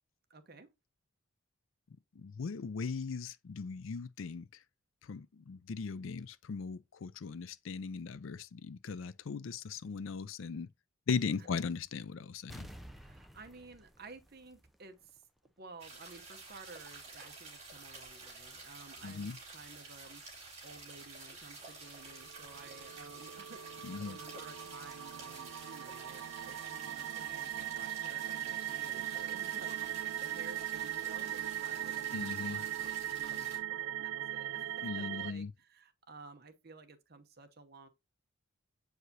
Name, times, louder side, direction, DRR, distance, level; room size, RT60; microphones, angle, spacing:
voice 1, 0.3-0.7 11.4-11.5 13.0-15.2 15.6-37.9, right 3 dB, 45° right, 0.8 m, -54 dB
voice 2, 2.2-4.5 5.0-10.7 11.1-12.7 19.0-19.4 23.8-24.2 32.1-32.6 34.8-35.5, left 5 dB, 70° left, 0.4 m, -38 dB
sound 1, 12.5-15.1 15.4-15.5, equal, ahead, 0.4 m, -51 dB
sound 2, 15.8-33.6, right 3 dB, 30° right, 2.8 m, -50 dB
sound 3, 22.1-35.3, right 12 dB, 75° right, 0.3 m, -39 dB
7.9 x 4.8 x 2.7 m
head